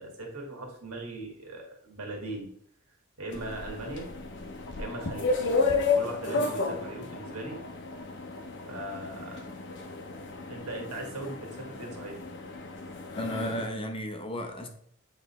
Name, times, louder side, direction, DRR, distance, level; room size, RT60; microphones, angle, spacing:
voice 1, 0.0-2.5 3.2-4.1 4.8-5.4 5.9-7.6 8.7-9.4 10.5-12.2, right 2 dB, 75° right, 0 dB, 1.8 m, -39 dB
sound 1, 3.3-13.7, left 4 dB, 55° left, 0.8 m, -32 dB
voice 2, 13.1-14.7, equal, 25° left, 4 dB, 0.8 m, -34 dB
8.0 x 3.3 x 4.2 m, 0.65 s
head